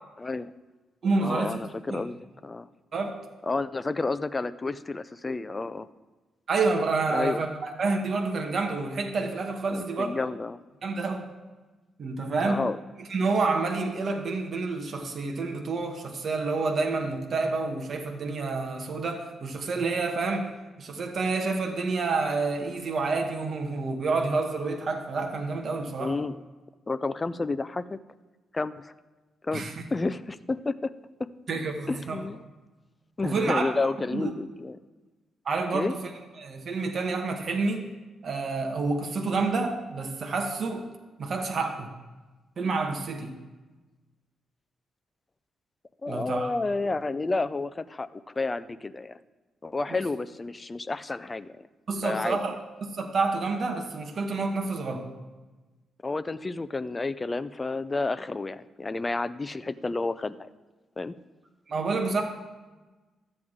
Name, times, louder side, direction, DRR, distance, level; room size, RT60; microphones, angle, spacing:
voice 1, 0.2-0.5 1.2-2.7 3.4-5.9 7.1-7.4 9.7-10.6 12.5-12.8 26.0-26.4 26.9-28.0 28.5-28.9 29.4-29.6 29.9-30.9 31.2-31.3 31.9-32.4 33.2-34.8 35.7-35.9 46.0-49.2 49.6-51.6 52.0-52.4 56.0-60.5 61.0-61.2, left 3 dB, 20° left, 14 dB, 0.3 m, -30 dB
voice 2, 1.0-1.6 1.9-2.0 2.9-3.2 6.5-10.1 10.8-11.3 12.0-12.7 13.1-20.5 20.8-26.1 29.5-29.8 31.5-32.2 33.2-33.7 34.1-34.3 35.4-36.0 36.4-37.9 38.2-40.9 41.2-41.9 42.6-43.3 46.1-46.5 49.9-50.0 51.9-52.5 52.8-55.1 61.7-62.2, right 3 dB, 45° right, 3 dB, 1.0 m, -28 dB
12.0 x 7.8 x 3.6 m, 1.2 s
cardioid pair, 145°, 0 cm